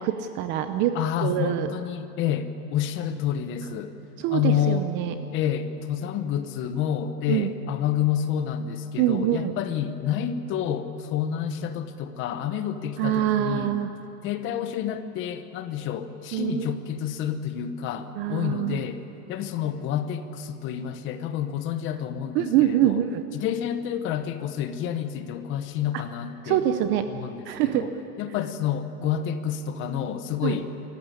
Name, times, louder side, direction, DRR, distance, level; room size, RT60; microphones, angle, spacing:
voice 1, 0.0-1.0 1.2-1.7 4.2-5.1 7.3-7.5 9.0-9.6 13.0-13.9 16.3-16.8 18.2-18.8 22.3-23.3 25.9-26.0 26.4-27.0 27.5-27.9 30.4-30.6, right 12 dB, 25° right, 9 dB, 0.6 m, -24 dB
voice 2, 0.9-4.0 4.3-4.9 5.3-13.8 14.2-19.0 19.3-23.0 23.3-26.6 27.1-27.9 28.2-30.7, left 9 dB, 25° left, 11 dB, 1.0 m, -29 dB
26.5 x 15.0 x 9.8 m, 2.9 s
hypercardioid pair, 145°, 47 cm